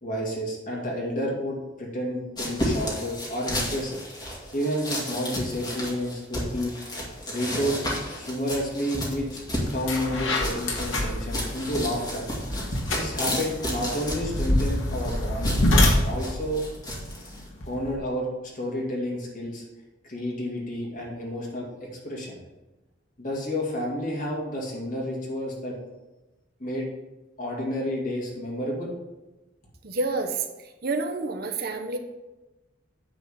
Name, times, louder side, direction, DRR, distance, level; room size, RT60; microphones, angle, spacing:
voice 1, 0.0-4.0 4.5-6.7 7.3-7.8 8.1-9.3 9.7-12.2 12.9-16.6 17.6-19.6 20.0-22.4 23.2-25.7 26.6-26.9 27.4-28.9, equal, 45° left, -2 dB, 2.4 m, -30 dB
sound 1, 2.4-17.5, left 1 dB, 20° left, 2.1 m, -33 dB
sound 2, 9.1-9.3 9.7-17.9, left 1 dB, 90° left, 2.0 m, -26 dB
voice 2, 29.8-30.4 30.8-32.0, right 3 dB, 55° right, 5 dB, 0.9 m, -28 dB
9.4 x 4.2 x 6.8 m, 1.1 s
head